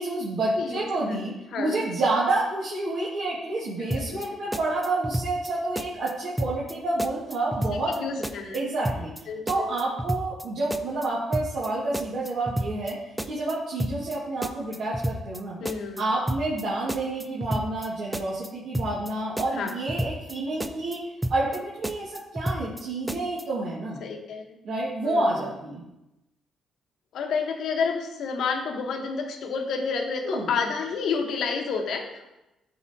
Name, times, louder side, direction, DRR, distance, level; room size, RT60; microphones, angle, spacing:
voice 1, 0.0-8.0 8.5-9.1 9.5-12.9 13.2-15.6 16.0-21.0 21.3-24.0 24.6-25.8 30.3-30.5, right 2 dB, 65° right, -8 dB, 1.6 m, -29 dB
voice 2, 0.6-1.2 1.5-1.8 3.6-4.2 7.7-8.6 9.3-9.7 15.6-16.1 19.5-19.8 24.0-24.6 25.0-25.5 27.1-32.3, left 5 dB, 70° left, 3 dB, 1.0 m, -30 dB
sound 1, 3.9-4.3 4.5-5.5 5.8-6.1 6.4-6.7 7.0-8.6 8.8-9.2 9.5-10.4 10.7-11.1 11.3-11.7 11.9-12.9 13.2-13.5 13.8-14.2 14.4-15.4 15.7-16.0 16.3-16.6 16.9-17.9 18.1-18.5 18.7-19.1 19.4-20.3 20.6-21.0 21.2-21.6 21.8-22.8 23.1-23.4, equal, 5° right, 0.4 m, -31 dB
12.0 x 4.1 x 2.7 m, 0.95 s
cardioid pair, 90°, 0 cm